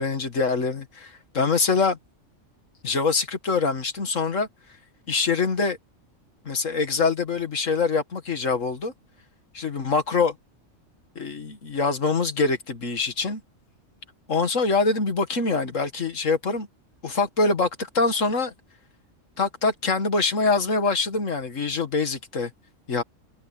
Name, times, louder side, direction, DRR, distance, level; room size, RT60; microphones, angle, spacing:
voice 1, 0.0-2.0 2.8-4.5 5.1-5.8 6.4-8.9 9.5-10.3 11.2-13.4 14.3-16.7 17.0-18.5 19.4-22.5 22.9-23.0, left 4 dB, 75° left, 2.3 m, -24 dB
omnidirectional pair, 1.3 m